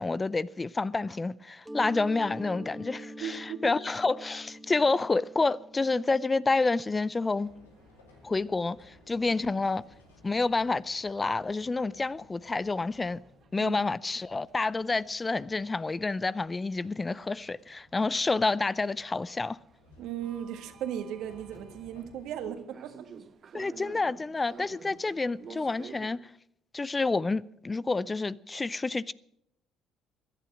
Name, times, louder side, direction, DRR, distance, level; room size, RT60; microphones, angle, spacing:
voice 1, 0.0-7.5 8.2-9.8 10.2-13.2 13.5-19.6 23.5-26.2 26.7-29.1, left 3 dB, 25° left, 0.5 m, -29 dB
Mallet percussion, 1.6-7.2, right 1 dB, 10° right, 1.5 m, -44 dB
voice 2, 3.2-3.7 13.6-13.8 20.0-23.1, right 10 dB, 70° right, 1.7 m, -37 dB
sound 1, 6.6-26.1, right 6 dB, 50° right, 1.0 m, -54 dB
sound 2, 7.4-22.6, left 3 dB, 90° left, 2.5 m, -60 dB
16.5 x 11.0 x 6.2 m
hypercardioid pair, 55°, 0 cm